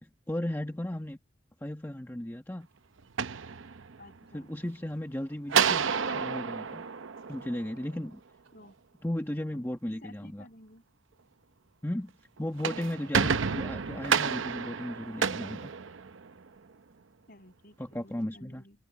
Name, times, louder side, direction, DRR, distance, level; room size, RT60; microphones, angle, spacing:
voice 1, 0.0-1.2 1.6-2.7 4.3-5.9 6.1-6.9 7.3-8.2 9.0-10.5 11.8-12.1 12.4-15.7 17.8-18.6, left 1 dB, 10° left, 1.3 m, -35 dB
sound 1, 3.0-4.2 5.5-8.0 12.4-16.5, right 6 dB, 85° right, 0.7 m, -30 dB
voice 2, 4.0-4.5 8.5-8.7 9.5-10.8 12.7-13.1 17.3-18.8, left 1 dB, 50° left, 7.2 m, -53 dB
open air
head